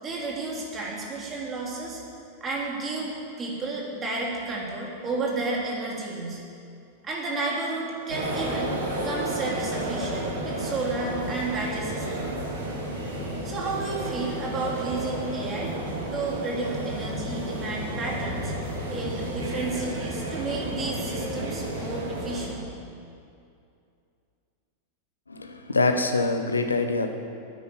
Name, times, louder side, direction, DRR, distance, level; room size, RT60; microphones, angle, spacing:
voice 1, 0.0-2.0 2.4-6.4 7.0-8.8 9.0-12.3 13.4-15.7 16.1-18.5 18.9-22.7, right 3 dB, 25° right, -3 dB, 3.2 m, -32 dB
sound 1, 8.1-22.5, right 1 dB, 65° right, 3.2 m, -32 dB
voice 2, 25.3-27.1, left 3 dB, 80° left, 6 dB, 1.1 m, -24 dB
10.0 x 9.5 x 8.6 m, 2.5 s
figure-of-eight pair, 90°, 0 cm